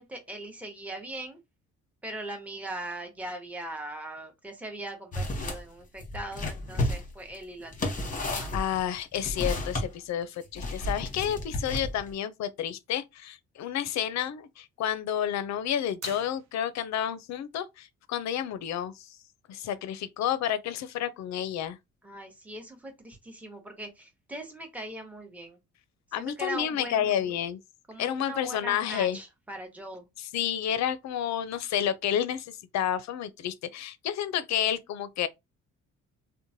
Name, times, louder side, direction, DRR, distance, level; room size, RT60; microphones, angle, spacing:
voice 1, 0.0-1.4 2.0-8.6 22.0-25.6 26.1-27.3 27.9-30.1, right 1 dB, 5° right, 0.8 m, -40 dB
sound 1, 5.1-5.6 6.0-9.9 10.6-12.1, left 1 dB, 25° left, 0.9 m, -32 dB
voice 2, 8.5-19.1 19.5-21.8 26.1-27.6 28.0-29.2 30.3-35.3, left 10 dB, 65° left, 0.5 m, -30 dB
sound 2, 16.0-17.0, right 7 dB, 60° right, 0.6 m, -46 dB
3.0 x 2.1 x 2.6 m
cardioid pair, 90°, 30 cm